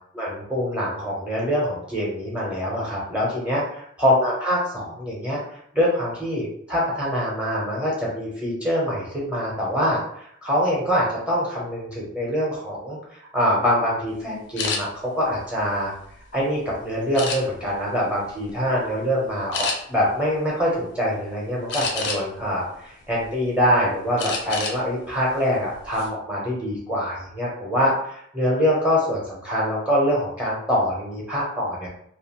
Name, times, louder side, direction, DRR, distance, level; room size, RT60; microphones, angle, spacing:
voice 1, 0.1-3.6 4.0-5.4 5.7-15.9 16.3-31.9, equal, 5° right, -5 dB, 0.7 m, -24 dB
sound 1, 14.6-14.8 15.4-16.4 17.1-17.7 18.3-18.5 18.8-19.0 19.5-19.8 21.7-22.4 22.9-23.6 24.2-24.8 25.1-25.3 25.7-26.1, left 4 dB, 55° left, 0.5 m, -29 dB
2.6 x 2.4 x 2.9 m, 0.69 s
head